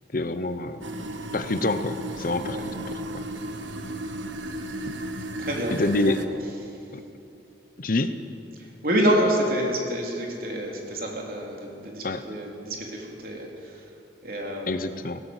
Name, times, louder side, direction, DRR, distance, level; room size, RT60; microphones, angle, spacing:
voice 1, 0.1-0.8 1.3-3.2 4.9-5.0 5.7-6.2 6.9-7.0 7.8-8.1 12.0-12.2 14.7-15.2, left 2 dB, 45° left, 11 dB, 0.9 m, -27 dB
sound 1, 0.8-6.3, right 1 dB, 90° right, 1.5 m, -34 dB
voice 2, 5.4-6.1 6.6-6.9 8.5-13.9 14.2-14.7, equal, 50° right, -1 dB, 4.0 m, -28 dB
19.0 x 17.5 x 8.2 m, 2.9 s
head